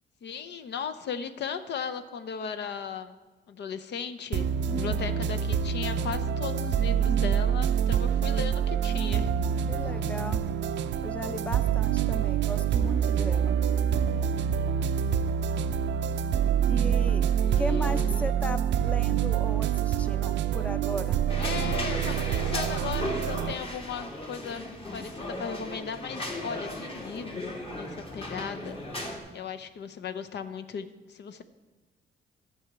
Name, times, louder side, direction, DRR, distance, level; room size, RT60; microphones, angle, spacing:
voice 1, 0.2-3.2 3.5-9.3 17.0-17.1 17.4-18.3 21.4-28.8 29.3-31.4, left 6 dB, 60° left, 9 dB, 0.6 m, -37 dB
sound 1, 4.3-23.5, right 8 dB, 65° right, 0.4 m, -26 dB
voice 2, 4.7-5.1 9.7-10.4 11.0-13.6 16.7-17.3 17.6-21.2, left 1 dB, 5° left, 10 dB, 0.6 m, -36 dB
sound 2, 21.3-29.2, left 1 dB, 30° left, 2.0 m, -36 dB
11.0 x 4.8 x 7.9 m, 1.2 s
cardioid pair, 90°, 20 cm